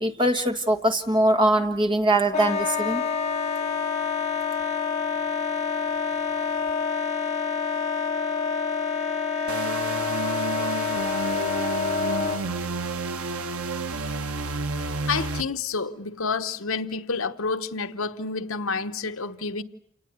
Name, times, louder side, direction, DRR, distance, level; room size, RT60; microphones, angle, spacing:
voice 1, 0.0-3.0, right 1 dB, 25° right, 1.8 m, -22 dB
Wind instrument woodwind instrument, 2.3-12.4, left 5 dB, 30° left, 3.0 m, -27 dB
sound 1, 9.5-15.4, right 3 dB, 90° right, 1.1 m, -30 dB
voice 2, 15.1-19.6, left 4 dB, 70° left, 1.2 m, -29 dB
28.5 x 19.5 x 9.6 m
head